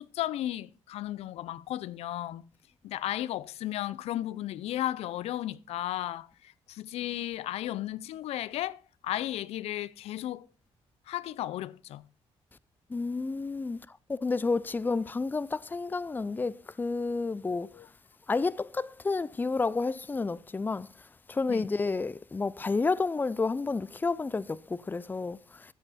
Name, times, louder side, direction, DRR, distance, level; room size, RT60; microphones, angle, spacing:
voice 1, 0.0-2.5 2.8-10.5 11.1-12.0 17.5-17.9 21.5-21.7, left 13 dB, 80° left, 0.5 m, -35 dB
voice 2, 12.9-17.8 18.3-20.9 21.3-25.7, left 3 dB, 20° left, 0.5 m, -30 dB
14.0 x 7.9 x 4.2 m
cardioid pair, 95°, 10 cm